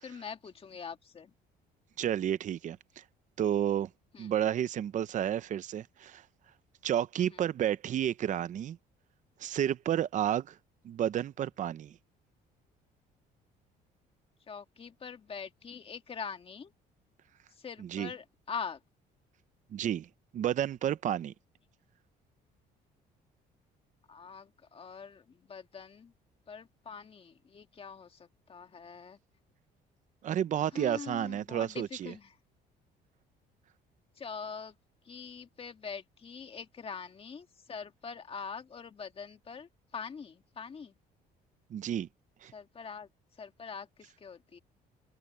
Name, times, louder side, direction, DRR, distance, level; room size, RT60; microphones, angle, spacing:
voice 1, 0.0-1.3 4.1-4.3 7.2-7.4 14.5-16.7 17.6-18.8 24.1-26.1 26.5-29.2 30.7-32.4 34.2-34.7 35.1-40.9 42.5-43.1 43.4-44.6, left 6 dB, 35° left, 1.9 m, -43 dB
voice 2, 2.0-3.0 3.4-3.9 4.2-6.2 6.8-8.8 9.4-10.6 10.8-11.9 17.8-18.1 19.7-20.1 20.3-21.3 30.2-32.1 41.7-42.1 42.4-42.5, right 10 dB, 45° right, 0.7 m, -31 dB
open air
cardioid pair, 110°, 17 cm